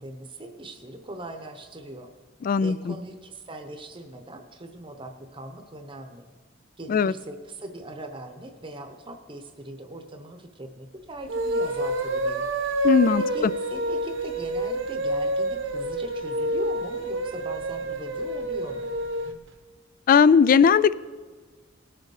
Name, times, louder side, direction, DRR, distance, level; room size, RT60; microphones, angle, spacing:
voice 1, 0.0-2.1 2.6-6.2 6.8-12.5 13.2-18.9, right 1 dB, 25° right, 6 dB, 0.8 m, -40 dB
voice 2, 2.4-2.9 6.9-7.1 12.8-13.2 20.1-20.9, left 6 dB, 45° left, 18 dB, 0.3 m, -18 dB
sound 1, 11.2-19.4, right 1 dB, 75° right, 1.0 m, -28 dB
19.0 x 6.8 x 4.9 m, 1.4 s
head